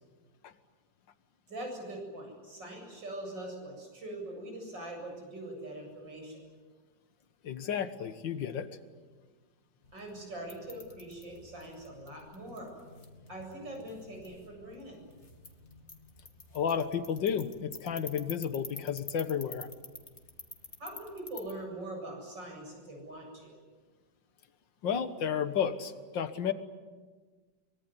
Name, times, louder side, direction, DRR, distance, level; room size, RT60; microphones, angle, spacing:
voice 1, 1.5-6.4 9.9-12.7 13.3-15.0 20.8-23.6, right 1 dB, 75° right, 1 dB, 8.6 m, -42 dB
voice 2, 7.4-8.7 16.5-19.7 24.8-26.5, left 7 dB, 80° left, 11 dB, 2.1 m, -32 dB
bat house, 9.8-21.5, left 3 dB, 35° left, 2.5 m, -50 dB
24.0 x 22.5 x 9.9 m, 1.4 s
omnidirectional pair, 2.0 m